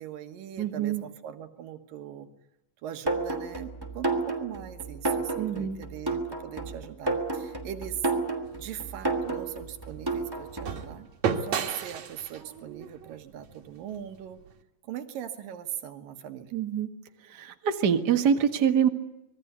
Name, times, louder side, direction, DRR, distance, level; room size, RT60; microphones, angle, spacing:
voice 1, 0.0-2.3 2.8-8.1 8.6-11.1 11.3-14.4 14.8-16.6, right 10 dB, 90° right, 7 dB, 3.2 m, -40 dB
voice 2, 0.6-1.0 5.3-5.8 16.5-16.9 17.3-18.9, right 8 dB, 40° right, 6 dB, 1.6 m, -25 dB
sound 1, 3.1-10.9, right 3 dB, 5° right, 2.3 m, -31 dB
sound 2, 8.4-14.6, right 7 dB, 60° right, 2.8 m, -35 dB
26.0 x 21.0 x 8.2 m, 0.91 s
omnidirectional pair, 3.8 m